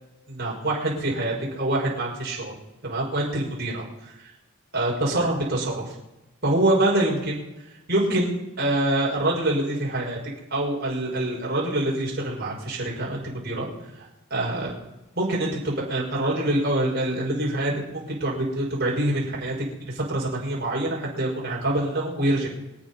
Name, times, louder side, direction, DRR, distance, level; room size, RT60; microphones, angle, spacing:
voice 1, 0.3-2.6 2.8-3.8 4.7-5.9 6.4-7.4 7.9-8.3 8.6-10.2 10.5-13.7 13.9-14.8 15.2-19.6 19.9-22.5, right 1 dB, 45° right, -4 dB, 5.6 m, -25 dB
26.0 x 8.9 x 5.5 m, 0.99 s
head